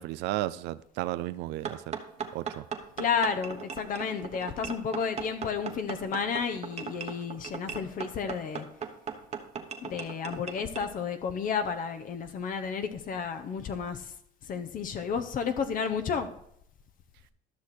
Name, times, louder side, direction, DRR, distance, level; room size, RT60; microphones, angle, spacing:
voice 1, 0.0-2.0 2.3-2.7, right 16 dB, 90° right, 0.4 m, -33 dB
sound 1, 1.6-10.9, right 6 dB, 40° right, 1.1 m, -38 dB
voice 2, 3.0-8.7 9.8-14.1 14.5-16.3, left 6 dB, 55° left, 0.9 m, -32 dB
12.5 x 6.3 x 4.2 m
cardioid pair, 110°, 17 cm